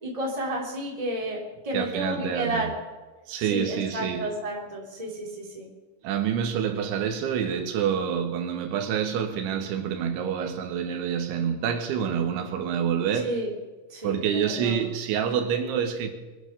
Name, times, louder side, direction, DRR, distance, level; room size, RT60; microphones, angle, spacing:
voice 1, 0.0-2.7 3.5-5.7 13.2-13.5 13.9-14.8, right 1 dB, 10° right, 2.6 m, -31 dB
voice 2, 1.7-2.7 3.3-4.3 6.0-13.4 14.0-16.1, right 8 dB, 80° right, 3.6 m, -27 dB
23.5 x 9.0 x 6.7 m
omnidirectional pair, 5.4 m